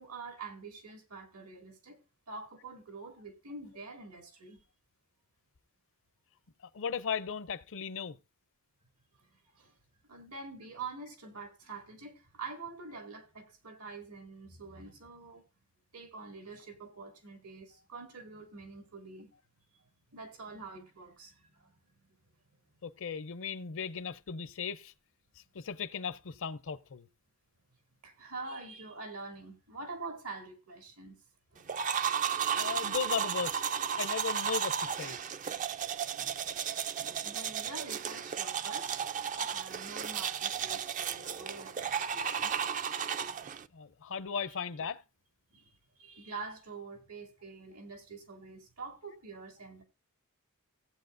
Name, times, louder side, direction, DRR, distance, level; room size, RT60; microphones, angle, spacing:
voice 1, 0.0-2.0 2.3-4.6 9.5-9.8 10.1-15.5 15.9-19.3 20.1-21.7 28.0-31.2 31.5-31.6 37.0-39.1 39.4-42.5 45.5-49.8, right 3 dB, 80° right, 2.4 m, -46 dB
voice 2, 6.7-8.2 22.8-24.9 25.5-27.1 32.5-33.6 34.0-35.2 43.7-45.0, left 6 dB, 60° left, 0.6 m, -36 dB
sound 1, 31.7-43.7, right 8 dB, 35° right, 0.4 m, -34 dB
16.5 x 8.2 x 2.6 m
head